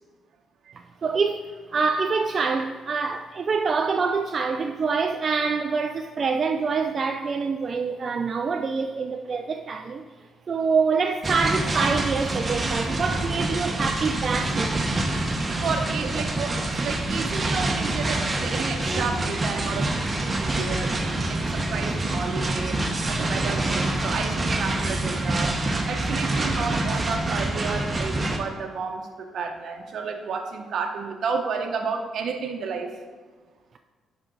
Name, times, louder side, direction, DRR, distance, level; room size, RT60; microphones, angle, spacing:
voice 1, 1.0-10.0 10.5-14.9, right 5 dB, 45° right, 0.4 m, -25 dB
sound 1, 11.2-28.4, right 2 dB, 25° right, 1.1 m, -26 dB
voice 2, 15.6-25.6 25.9-32.9, right 5 dB, 65° right, 0.9 m, -31 dB
10.5 x 5.2 x 3.9 m
cardioid pair, 90°, 0 cm